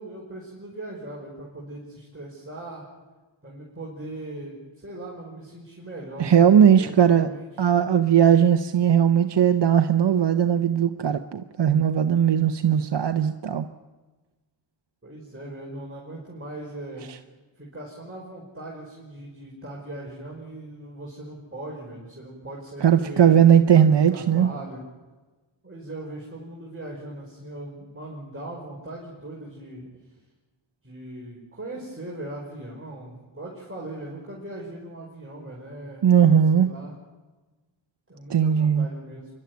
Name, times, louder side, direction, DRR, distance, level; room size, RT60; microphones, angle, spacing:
voice 1, 0.0-2.8 3.4-7.6 15.0-17.0 17.6-23.4 23.7-24.8 25.6-29.9 30.8-36.0 36.5-37.0 38.1-39.3, right 1 dB, 25° right, -3 dB, 5.0 m, -39 dB
voice 2, 6.2-7.3 7.6-13.6 22.8-24.5 36.0-36.7 38.3-38.9, right 8 dB, 60° right, 9 dB, 0.8 m, -18 dB
25.5 x 12.0 x 9.4 m, 1.2 s
cardioid pair, 50°, 48 cm